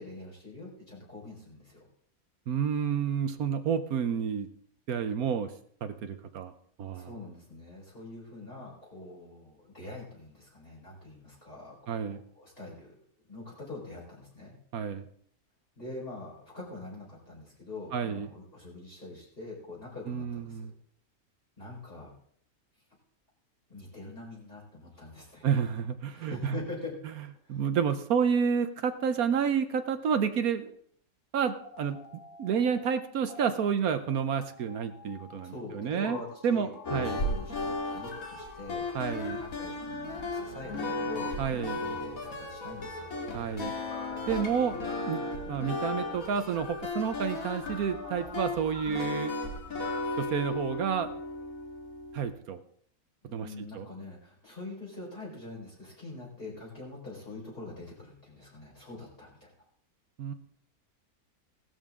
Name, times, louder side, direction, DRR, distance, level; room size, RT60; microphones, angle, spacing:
voice 1, 0.0-1.9 6.9-13.0 13.3-14.5 15.8-20.7 21.6-22.1 23.7-25.5 26.1-26.9 27.4-27.6 35.4-41.4 41.8-43.1 53.2-59.7, left 2 dB, 40° left, -6 dB, 4.8 m, -44 dB
voice 2, 2.5-4.5 4.9-5.5 5.8-6.5 6.8-7.1 11.9-12.2 14.7-15.1 17.9-18.3 20.1-20.7 25.4-26.6 27.5-30.7 31.3-32.0 32.4-36.2 36.4-37.2 38.9-39.4 41.4-41.8 43.3-43.7 44.3-44.8 45.1-45.2 45.5-49.3 50.2-51.1 52.1-52.6 53.2-53.5 53.7-53.8 60.2-60.3, right 7 dB, 75° right, 9 dB, 1.3 m, -30 dB
sound 1, 31.5-32.9 33.2-33.4 34.0-50.0, left 3 dB, 85° left, 3.1 m, -47 dB
sound 2, 36.8-52.3, left 2 dB, 65° left, 2.7 m, -35 dB
17.0 x 12.5 x 3.7 m, 0.62 s
omnidirectional pair, 1.6 m